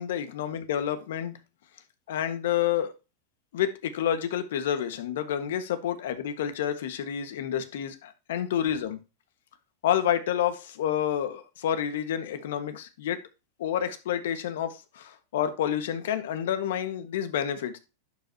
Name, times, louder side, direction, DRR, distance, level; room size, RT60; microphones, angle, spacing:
voice 1, 0.0-1.4 2.1-2.9 3.5-9.0 9.8-13.2 13.6-17.8, left 10 dB, 80° left, 1.4 m, -29 dB
11.0 x 5.2 x 2.8 m
supercardioid pair, 145°, 0 cm